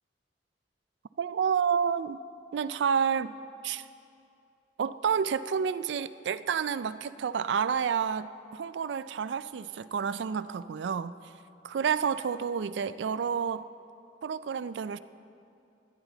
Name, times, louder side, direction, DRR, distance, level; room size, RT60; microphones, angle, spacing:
voice 1, 1.2-2.2 2.5-3.3 3.6-3.8 4.8-11.2 11.6-13.6 14.2-15.0, right 7 dB, 75° right, 15 dB, 0.4 m, -29 dB
20.0 x 9.7 x 4.0 m, 2.6 s
head